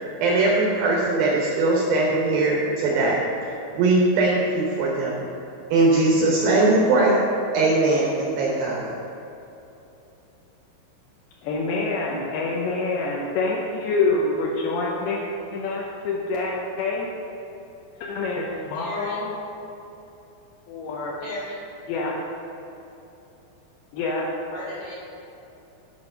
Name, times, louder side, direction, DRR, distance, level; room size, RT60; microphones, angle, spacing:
voice 1, 0.2-3.2 3.8-5.2 5.7-7.2 7.5-8.9, right 2 dB, 80° right, -2 dB, 2.1 m, -20 dB
voice 2, 11.4-15.2 15.5-17.1 18.0-19.3 20.7-21.1 21.9-22.1 23.9-24.3, left 3 dB, 80° left, -3 dB, 2.3 m, -26 dB
voice 3, 18.7-19.2 21.2-21.6 24.5-25.0, left 1 dB, 55° left, -7 dB, 2.2 m, -35 dB
12.5 x 4.7 x 5.4 m, 2.9 s
omnidirectional pair, 5.5 m